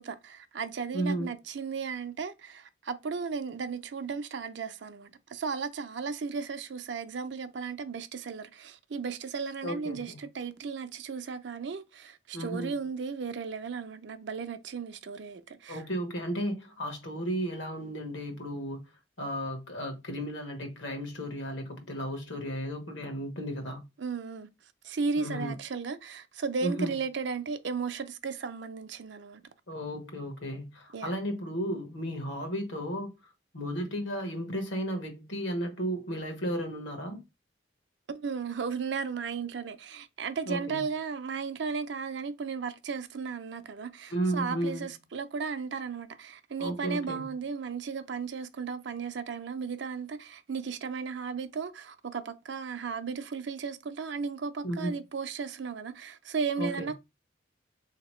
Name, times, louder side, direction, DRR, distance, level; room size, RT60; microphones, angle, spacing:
voice 1, 0.0-15.8 24.0-24.5 24.8-29.4 30.9-31.4 38.1-56.9, right 5 dB, 65° right, 0.5 m, -35 dB
voice 2, 0.9-1.3 9.6-10.2 12.3-12.7 15.7-18.8 19.2-23.8 25.2-25.5 26.6-26.9 29.7-33.1 33.5-37.2 40.5-40.8 44.1-44.9 46.6-47.3 54.6-54.9 56.6-56.9, equal, 75° left, 1.1 m, -34 dB
3.6 x 2.9 x 3.1 m
head